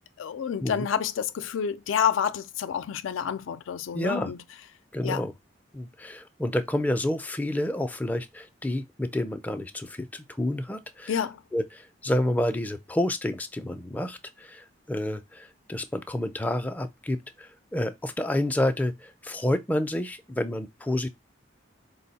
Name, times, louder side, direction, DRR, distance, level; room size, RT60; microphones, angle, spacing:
voice 1, 0.2-4.4 5.0-5.2 11.1-11.4, left 8 dB, 90° left, 0.4 m, -28 dB
voice 2, 3.9-4.3 4.9-5.3 5.7-11.1 11.5-21.1, left 1 dB, 10° left, 0.3 m, -29 dB
4.4 x 2.0 x 4.0 m
head